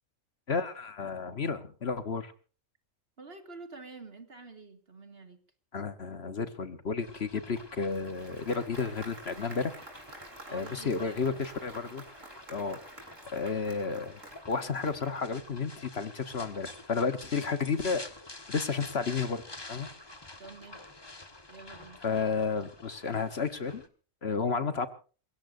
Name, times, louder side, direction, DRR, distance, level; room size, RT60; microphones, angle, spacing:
voice 1, 0.5-2.3 5.7-9.7 10.5-12.0 12.5-12.8 13.3-14.2 14.5-18.0 18.5-19.4 19.7-19.9 22.0-23.8 24.2-24.9, left 5 dB, 55° left, 10 dB, 1.4 m, -32 dB
voice 2, 3.2-5.4 10.5-11.4 20.4-20.9 21.5-22.0, right 3 dB, 50° right, 6 dB, 2.4 m, -48 dB
sound 1, 7.0-23.9, left 2 dB, 20° left, 1.4 m, -48 dB
Applause, 7.6-15.5, right 2 dB, 75° right, 4.2 m, -50 dB
28.0 x 17.0 x 2.6 m, 0.38 s
omnidirectional pair, 1.3 m